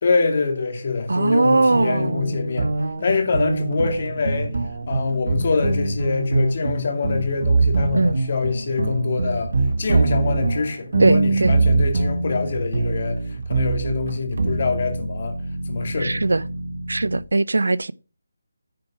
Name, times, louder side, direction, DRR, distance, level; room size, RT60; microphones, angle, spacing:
voice 1, 0.0-2.7 3.0-4.5 4.9-9.5 9.8-13.2 13.5-15.4 15.7-16.3, left 4 dB, 45° left, 2.2 m, -24 dB
voice 2, 1.1-2.4 7.9-8.2 11.0-11.5 16.0-16.4 16.9-17.9, right 2 dB, 80° right, 0.4 m, -20 dB
sound 1, 1.7-17.2, right 3 dB, 60° right, 1.5 m, -23 dB
9.5 x 4.6 x 6.0 m
figure-of-eight pair, 165°, 0 cm